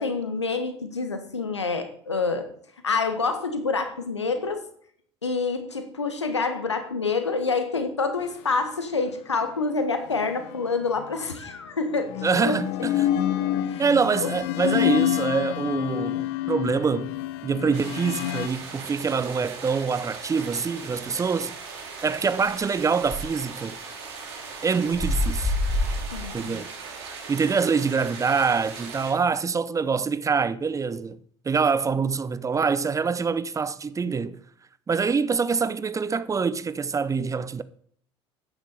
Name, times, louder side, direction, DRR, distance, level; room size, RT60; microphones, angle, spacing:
voice 1, 0.0-2.5 2.8-4.6 5.2-12.6 13.6-13.8 14.2-14.3 26.1-26.6 34.1-34.2, left 4 dB, 85° left, 1.5 m, -27 dB
sound 1, 10.1-11.1 11.9-18.5, left 13 dB, 60° left, 0.8 m, -27 dB
voice 2, 12.2-12.9 13.8-17.1 17.4-21.5 22.0-23.8 24.6-25.5 26.3-26.7 27.3-31.2 31.4-34.4 34.9-37.6, right 5 dB, 20° right, 0.7 m, -25 dB
sound 2, 17.7-29.1, right 5 dB, 65° right, 3.4 m, -39 dB
sound 3, 20.8-26.4, left 1 dB, 15° left, 3.2 m, -28 dB
13.0 x 10.0 x 4.2 m
figure-of-eight pair, 65°, 14 cm